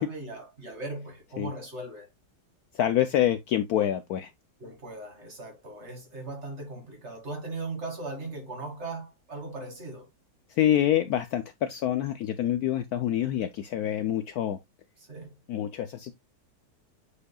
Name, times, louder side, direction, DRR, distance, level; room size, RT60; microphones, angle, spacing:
voice 1, 0.0-2.1 4.6-10.1 15.1-15.3, right 2 dB, 40° right, 2.2 m, -38 dB
voice 2, 2.7-4.3 10.5-14.6 15.5-16.1, left 11 dB, 70° left, 1.0 m, -26 dB
8.3 x 5.0 x 2.2 m
omnidirectional pair, 2.0 m